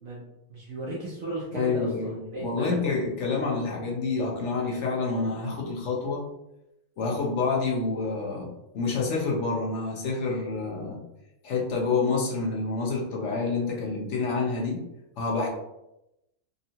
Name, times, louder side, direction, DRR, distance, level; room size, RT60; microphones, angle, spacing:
voice 1, 0.0-2.8, right 1 dB, 65° right, -5 dB, 1.0 m, -36 dB
voice 2, 1.5-6.3 7.0-8.5 8.7-11.0 11.4-14.8 15.2-15.5, left 4 dB, 55° left, -2 dB, 1.0 m, -28 dB
3.7 x 2.2 x 2.7 m, 0.89 s
omnidirectional pair, 1.6 m